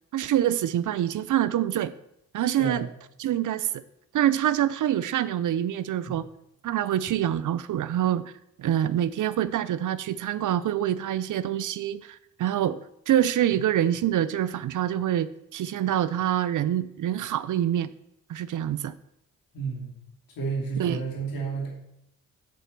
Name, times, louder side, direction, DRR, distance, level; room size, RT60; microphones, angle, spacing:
voice 1, 0.1-1.9 2.3-2.9 3.2-3.8 4.1-6.2 6.6-8.3 8.6-12.8 13.1-17.9 18.3-18.9 20.8-21.0, right 11 dB, 60° right, 16 dB, 0.5 m, -26 dB
voice 2, 19.5-19.9 20.4-21.7, right 4 dB, 75° left, -2 dB, 2.9 m, -31 dB
7.8 x 4.4 x 6.7 m, 0.79 s
supercardioid pair, 60°, 35 cm